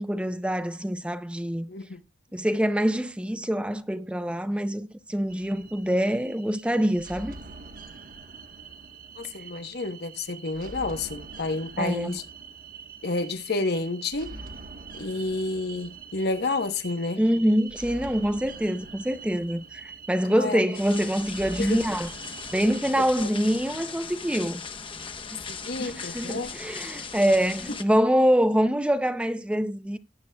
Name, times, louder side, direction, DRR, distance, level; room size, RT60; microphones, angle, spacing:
voice 1, 0.0-1.7 2.3-7.4 11.8-12.2 17.2-22.1 22.5-24.6 25.3-25.4 25.8-30.0, equal, 5° right, 0.6 m, -25 dB
sound 1, 5.3-23.0, right 4 dB, 50° right, 1.2 m, -44 dB
voice 2, 9.2-12.2 13.0-14.4 14.9-17.2 20.3-20.6 21.6-21.8 23.2-23.3 25.5-26.5, left 3 dB, 60° left, 1.1 m, -30 dB
sound 2, 20.7-27.8, left 5 dB, 30° left, 1.0 m, -38 dB
18.5 x 7.9 x 2.3 m
head